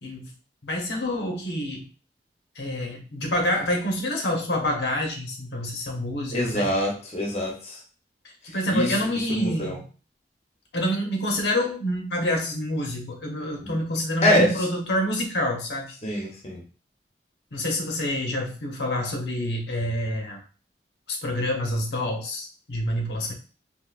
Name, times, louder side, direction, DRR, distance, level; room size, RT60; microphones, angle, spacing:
voice 1, 0.6-1.9 2.6-6.9 8.4-9.8 10.7-16.2 17.5-20.4 21.1-23.3, left 1 dB, 80° left, 1 dB, 0.8 m, -27 dB
voice 2, 6.3-7.8 8.7-8.9 9.3-9.8 13.6-13.7 14.2-14.5 16.0-16.6, equal, 35° left, 0 dB, 0.7 m, -24 dB
3.7 x 2.6 x 2.4 m, 0.36 s
head